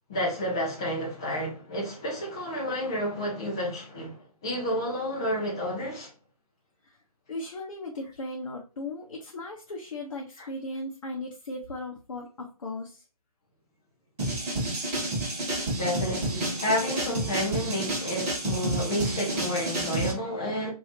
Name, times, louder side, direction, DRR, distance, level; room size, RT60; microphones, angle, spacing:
voice 1, 0.1-6.1 10.4-10.5 15.8-20.7, equal, 10° left, 0.3 m, -30 dB
voice 2, 7.3-13.0, left 2 dB, 55° left, 0.8 m, -37 dB
sound 1, 14.2-20.1, right 1 dB, 25° right, 1.6 m, -30 dB
3.1 x 2.7 x 3.2 m
figure-of-eight pair, 150°, 20 cm